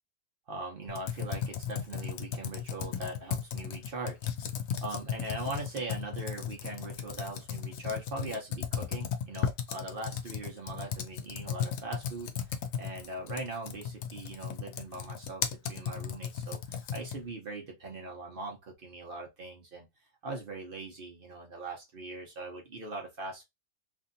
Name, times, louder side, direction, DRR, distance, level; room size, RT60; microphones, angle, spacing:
voice 1, 0.5-4.3 4.8-15.4 15.7-19.9 20.2-23.4, right 2 dB, 45° right, 0.7 m, -40 dB
Computer keyboard, 0.9-17.3, left 8 dB, 75° left, 0.7 m, -36 dB
3.1 x 2.7 x 2.5 m
omnidirectional pair, 1.9 m